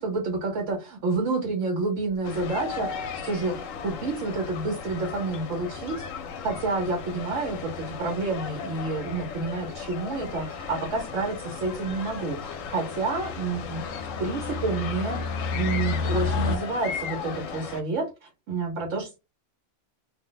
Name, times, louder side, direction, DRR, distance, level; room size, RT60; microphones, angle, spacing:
voice 1, 0.0-6.0 6.4-13.8 14.2-19.2, right 3 dB, 75° right, 2 dB, 1.1 m, -29 dB
sound 1, 2.2-17.8, left 6 dB, 85° left, 1.0 m, -36 dB
sound 2, 3.8-4.3 5.1-5.2 5.4-5.5 5.8-5.9 6.2-6.5 6.9-7.2 7.4-16.6, left 4 dB, 65° left, 0.6 m, -34 dB
2.7 x 2.1 x 3.7 m, 0.27 s
omnidirectional pair, 1.3 m